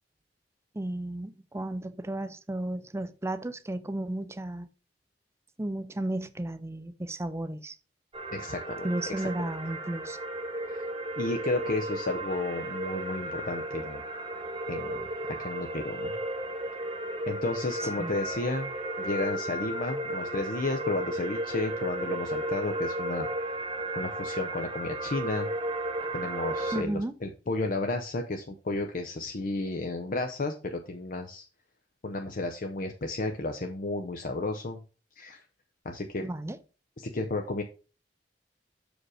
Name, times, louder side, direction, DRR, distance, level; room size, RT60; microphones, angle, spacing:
voice 1, 0.7-4.7 5.6-7.8 8.8-10.2 17.8-18.1 26.7-27.1 36.2-36.6, right 1 dB, 15° right, 0.5 m, -34 dB
sound 1, 8.1-26.8, right 1 dB, 30° right, 1.1 m, -34 dB
voice 2, 8.3-8.9 9.2-9.3 10.7-10.8 11.2-14.0 14.7-15.1 15.4-16.1 17.3-18.7 19.0-23.3 24.0-25.5 26.1-31.4 32.0-34.8 35.2-35.4 35.8-36.2 37.0-37.6, left 2 dB, 50° left, 0.7 m, -32 dB
6.3 x 5.1 x 4.8 m
head